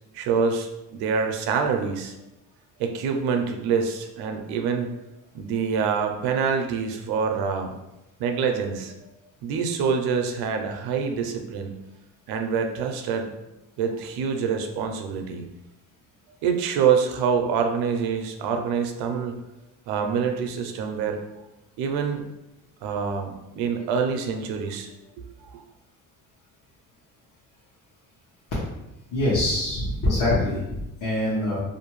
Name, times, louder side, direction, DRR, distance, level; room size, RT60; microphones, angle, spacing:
voice 1, 0.1-2.1 2.8-5.0 5.3-7.8 8.2-9.0 9.4-11.8 12.3-13.4 13.8-15.5 16.4-19.4 19.9-21.2 21.8-22.3 22.8-24.9 25.5-25.6, right 6 dB, 85° right, 5 dB, 0.5 m, -26 dB
voice 2, 29.1-31.6, left 1 dB, 60° left, -8 dB, 1.0 m, -24 dB
2.6 x 2.3 x 3.0 m, 0.95 s
cardioid pair, 95°, 37 cm